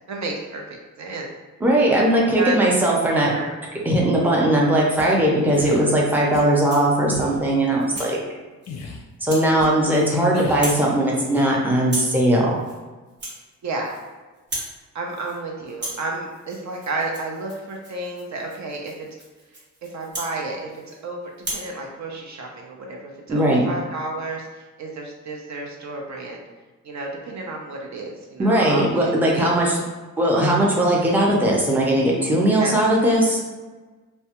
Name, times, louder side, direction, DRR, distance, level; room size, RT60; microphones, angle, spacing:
voice 1, 0.1-1.3 2.1-2.6 3.1-3.5 3.8-3.9 13.6-13.9 14.9-18.9 19.8-26.4 26.8-29.4 32.6-32.7, right 2 dB, 60° right, 0 dB, 0.5 m, -32 dB
voice 2, 1.6-3.3 3.8-8.2 9.2-12.6 23.3-23.7 28.4-29.8 30.2-33.4, right 1 dB, 5° right, -3 dB, 0.5 m, -19 dB
sound 1, 5.0-5.1 5.5-5.8 6.3-6.5 7.1-7.4 8.0-8.1 8.7-9.0 9.6-9.7 10.3-10.7, left 4 dB, 55° left, 0.4 m, -33 dB
Rattle (instrument), 6.5-7.0 7.4-8.1 8.6-8.9 9.3-9.5 9.8-10.2 10.5-10.9 11.1-11.5 11.8-12.2 12.6-12.8 13.1-14.1 14.3-14.8 15.1-15.4 15.7-21.0 21.4-21.7, right 1 dB, 35° right, 0.8 m, -36 dB
2.2 x 2.1 x 2.8 m, 1.3 s
cardioid pair, 90°, 32 cm